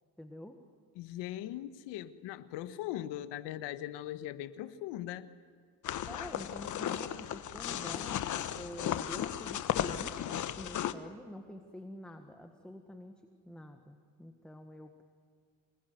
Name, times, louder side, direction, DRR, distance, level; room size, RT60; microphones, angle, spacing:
voice 1, 0.2-0.6 6.1-13.1 13.4-15.0, equal, ahead, 5 dB, 1.5 m, -47 dB
voice 2, 0.9-5.3, left 13 dB, 80° left, 11 dB, 1.5 m, -40 dB
sound 1, 5.8-10.9, left 10 dB, 45° left, 1.2 m, -35 dB
27.0 x 20.5 x 9.5 m, 2.1 s
cardioid pair, 135°, 42 cm